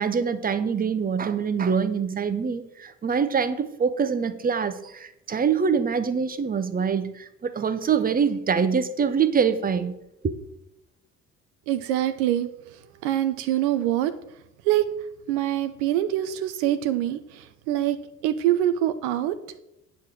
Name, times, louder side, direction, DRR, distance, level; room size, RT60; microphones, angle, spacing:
voice 1, 0.0-9.9 10.2-10.4, right 6 dB, 25° right, 0.9 m, -24 dB
voice 2, 11.7-12.5 13.0-14.1 14.6-14.8 15.3-18.0 18.2-19.3, right 12 dB, 65° right, 0.7 m, -24 dB
9.3 x 5.0 x 6.1 m
figure-of-eight pair, 50°, 36 cm